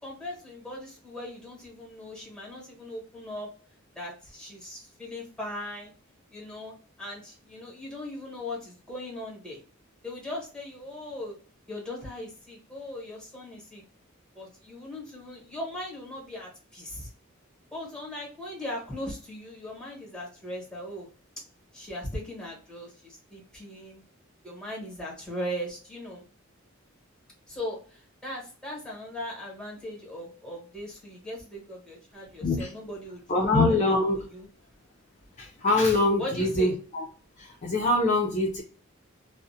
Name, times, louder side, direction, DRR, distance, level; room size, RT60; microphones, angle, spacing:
voice 1, 0.0-3.5 3.9-5.9 6.3-9.6 10.0-11.4 11.7-13.8 14.3-17.1 17.7-21.1 21.7-24.0 24.4-26.2 27.5-33.6 33.9-34.5 36.2-36.7, left 1 dB, 5° left, -2 dB, 1.0 m, -39 dB
voice 2, 33.3-34.3 35.4-37.0 37.4-38.6, left 2 dB, 35° left, -1 dB, 0.4 m, -24 dB
2.4 x 2.0 x 2.6 m, 0.39 s
head